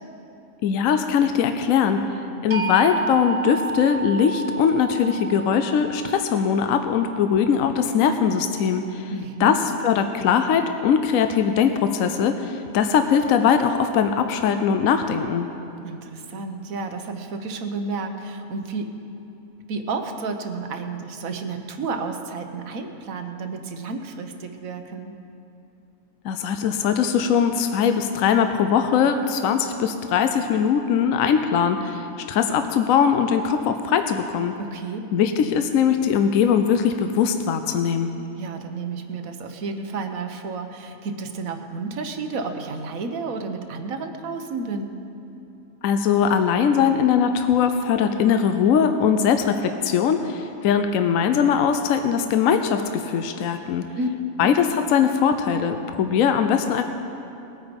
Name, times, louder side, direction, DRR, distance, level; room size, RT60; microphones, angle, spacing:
voice 1, 0.6-2.0 2.4-9.1 9.4-15.5 26.2-34.5 35.1-38.1 45.8-53.8 54.4-56.8, left 7 dB, 70° left, 8 dB, 1.0 m, -21 dB
sound 1, 2.5-8.5, right 4 dB, 40° right, 1.4 m, -32 dB
voice 2, 9.1-9.6 15.8-19.0 19.7-25.1 34.6-35.1 38.4-45.0 54.0-54.1 54.4-54.5, right 4 dB, 70° right, 6 dB, 1.4 m, -31 dB
20.0 x 8.9 x 5.3 m, 2.8 s
omnidirectional pair, 1.5 m